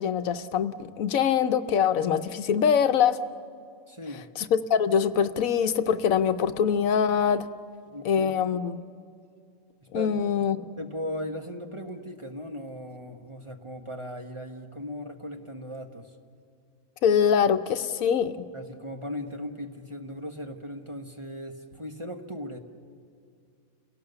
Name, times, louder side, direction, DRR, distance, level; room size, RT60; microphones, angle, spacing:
voice 1, 0.0-3.2 4.4-7.5 8.0-8.8 9.9-10.6 17.0-18.4, left 7 dB, 75° left, 10 dB, 1.2 m, -24 dB
voice 2, 3.9-4.2 7.9-8.4 9.9-16.1 18.5-22.6, equal, 25° right, 3 dB, 1.1 m, -38 dB
30.0 x 17.5 x 6.9 m, 2.3 s
omnidirectional pair, 1.5 m